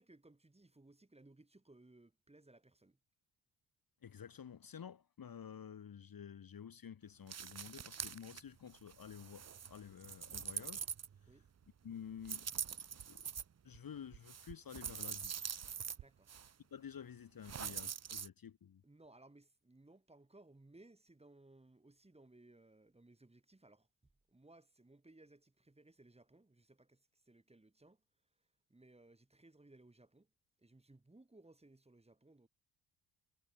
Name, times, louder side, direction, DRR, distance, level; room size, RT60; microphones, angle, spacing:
voice 1, 0.0-3.0 11.3-11.5 16.0-16.3 18.8-23.9 24.3-28.0 28.7-30.3 30.6-32.5, right 2 dB, 10° right, 3.6 m, -63 dB
voice 2, 4.0-10.9 11.8-12.5 13.1-13.2 13.6-15.3 16.7-18.8, left 8 dB, 45° left, 1.7 m, -51 dB
sound 1, 7.3-8.4 8.7-11.4 12.2-13.4 14.3-16.0 16.3-16.5 17.4-18.3, right 8 dB, 30° right, 0.8 m, -44 dB
sound 2, 12.2-12.3 12.6-12.7 13.0-13.1 13.4-13.5 13.7-13.8 14.1-14.6 14.8-15.0 15.2-15.3 15.6-15.7 16.0-16.1, right 12 dB, 70° right, 1.9 m, -55 dB
cardioid pair, 135°, 50 cm